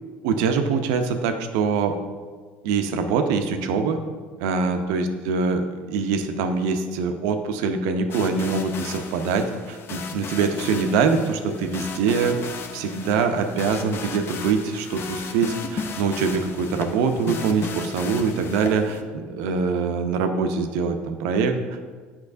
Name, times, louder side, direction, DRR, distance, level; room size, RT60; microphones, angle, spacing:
voice 1, 0.2-1.9 2.6-4.0 4.4-12.4 12.7-21.6, right 5 dB, 75° right, 7 dB, 0.6 m, -24 dB
sound 1, 8.1-19.0, left 5 dB, 45° left, 0.7 m, -35 dB
8.5 x 5.9 x 2.6 m, 1.5 s
hypercardioid pair, 80°, 6 cm